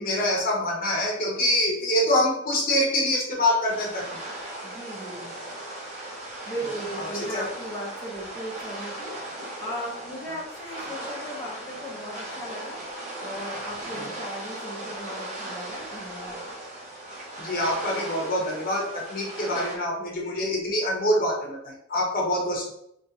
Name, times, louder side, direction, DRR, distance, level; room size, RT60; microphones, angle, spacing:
voice 1, 0.0-4.1 6.6-6.7 7.0-7.5 14.0-14.1 17.4-22.7, left 1 dB, 45° left, -2 dB, 1.0 m, -25 dB
sound 1, 3.7-19.8, right 1 dB, 35° right, 1.5 m, -37 dB
voice 2, 4.6-5.3 6.5-9.2 9.6-12.8 13.2-16.4, equal, 15° left, -6 dB, 1.0 m, -37 dB
4.1 x 3.0 x 2.9 m, 0.72 s
head